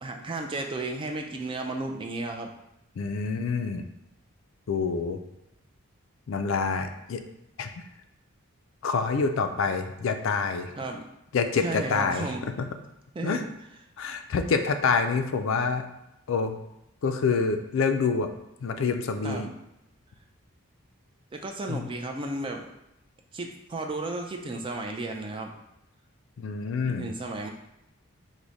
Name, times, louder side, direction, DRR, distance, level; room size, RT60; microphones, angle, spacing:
voice 1, 0.0-2.5 10.8-11.1 11.6-12.5 13.1-13.5 19.2-19.5 21.3-22.7 23.3-25.5 26.9-27.5, right 2 dB, 25° right, 3 dB, 0.3 m, -33 dB
voice 2, 3.0-3.9 4.7-5.2 6.3-7.2 7.6-7.7 8.8-10.7 11.3-12.3 12.6-12.7 13.2-13.4 14.0-15.9 16.3-16.6 17.0-18.3 18.6-19.5 21.7-21.9 26.4-27.1, left 5 dB, 65° left, 7 dB, 0.4 m, -27 dB
4.7 x 2.1 x 3.9 m, 0.87 s
head